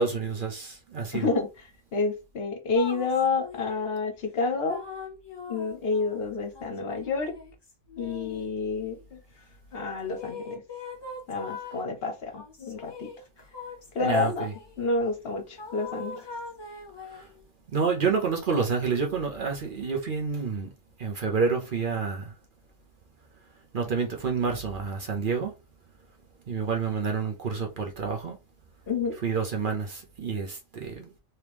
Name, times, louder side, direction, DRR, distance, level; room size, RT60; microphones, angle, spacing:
voice 1, 0.0-1.3 14.0-14.5 17.0-17.3 17.7-20.7 21.0-22.3 23.7-25.5 26.5-28.4 29.2-31.1, right 5 dB, 50° right, 0.8 m, -28 dB
voice 2, 1.1-1.5 1.9-4.8 5.5-7.3 8.0-9.2 9.7-10.6 11.3-13.1 13.9-14.5 14.8-16.2 28.9-29.2, left 4 dB, 60° left, 0.9 m, -29 dB
sound 1, 2.8-3.9 4.7-9.0 10.1-11.9 12.4-14.7 15.6-17.4, left 4 dB, 25° left, 0.6 m, -41 dB
3.4 x 2.9 x 3.0 m
omnidirectional pair, 1.2 m